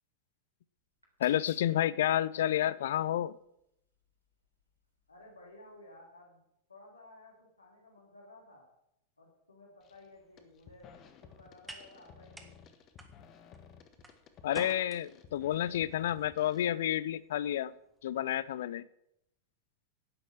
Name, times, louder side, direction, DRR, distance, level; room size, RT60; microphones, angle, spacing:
sound 1, 0.8-6.0, right 1 dB, 85° right, 3.6 m, -67 dB
voice 1, 1.2-3.4 14.4-17.7 18.0-18.9, left 11 dB, 60° left, 20 dB, 0.5 m, -30 dB
voice 2, 5.1-6.4 6.7-8.7 9.2-12.7, left 2 dB, 80° left, -4 dB, 2.9 m, -55 dB
sound 2, 9.8-10.1 10.4-16.7, left 7 dB, 35° left, 1.4 m, -56 dB
sound 3, 10.1-18.5, right 1 dB, 5° right, 1.7 m, -54 dB
10.5 x 9.3 x 7.3 m, 0.81 s
figure-of-eight pair, 90°, 0 cm